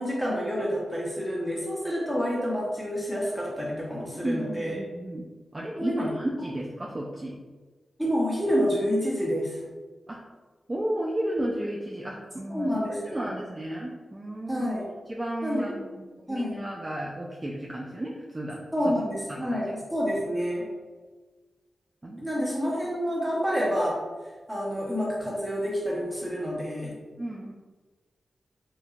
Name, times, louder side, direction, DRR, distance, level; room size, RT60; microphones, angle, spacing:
voice 1, 0.0-4.8 5.8-6.1 8.0-9.6 12.5-13.3 14.5-14.9 15.4-15.7 16.3-16.6 18.7-20.7 22.2-24.0 24.5-27.0, equal, 10° right, -6 dB, 1.3 m, -28 dB
voice 2, 4.2-5.3 5.5-7.4 10.1-10.2 10.7-14.8 15.1-18.9 19.4-19.6 22.0-22.5 27.2-27.5, right 1 dB, 30° right, -3 dB, 0.4 m, -33 dB
3.0 x 2.6 x 2.4 m, 1.3 s
cardioid pair, 50°, 0 cm